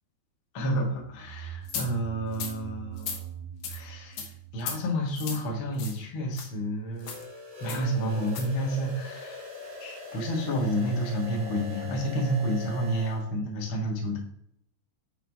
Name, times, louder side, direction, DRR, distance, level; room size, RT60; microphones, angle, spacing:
voice 1, 0.5-3.3 3.7-4.3 4.5-7.2 7.6-9.5 9.8-14.2, equal, 65° left, -2 dB, 1.2 m, -30 dB
sound 1, 0.9-5.5, right 9 dB, 75° right, 2.7 m, -43 dB
sound 2, 1.7-1.9 2.3-2.5 3.0-3.2 3.6-3.8 4.2-4.3 4.6-4.8 5.1-5.4 5.8-6.0 6.3-6.5 7.0-7.2 7.7-7.8 8.3-8.5, left 6 dB, 80° left, 1.7 m, -35 dB
sound 3, 7.0-13.2, left 2 dB, 40° right, 3.2 m, -42 dB
7.1 x 6.2 x 3.6 m, 0.71 s
omnidirectional pair, 5.1 m